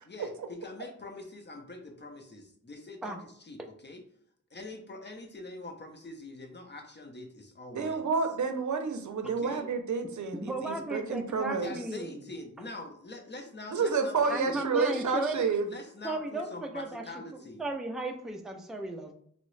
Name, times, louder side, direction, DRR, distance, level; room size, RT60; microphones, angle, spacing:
voice 1, 0.1-4.0 4.5-8.1 9.2-9.6 11.6-14.7 15.6-17.6, left 2 dB, 35° left, 4 dB, 0.6 m, -44 dB
voice 2, 7.7-11.7 13.7-15.6, right 4 dB, 70° right, 6 dB, 0.5 m, -29 dB
voice 3, 10.4-12.2 14.3-15.5 16.0-17.0 17.6-19.1, right 2 dB, ahead, 4 dB, 0.4 m, -35 dB
3.5 x 2.0 x 3.1 m, 0.63 s
wide cardioid pair, 65°, 31 cm